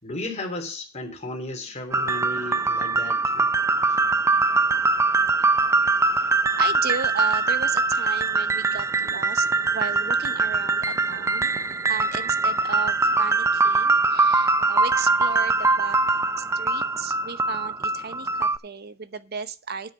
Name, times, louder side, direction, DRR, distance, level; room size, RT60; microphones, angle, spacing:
voice 1, 0.0-3.5 3.9-4.0, left 2 dB, 35° left, 3 dB, 3.2 m, -34 dB
sound 1, 1.9-18.6, right 3 dB, 15° right, 0.5 m, -22 dB
voice 2, 6.2-11.6 11.9-16.0 16.4-19.9, right 6 dB, 55° right, 13 dB, 0.9 m, -35 dB
9.6 x 7.8 x 5.3 m, 0.34 s
head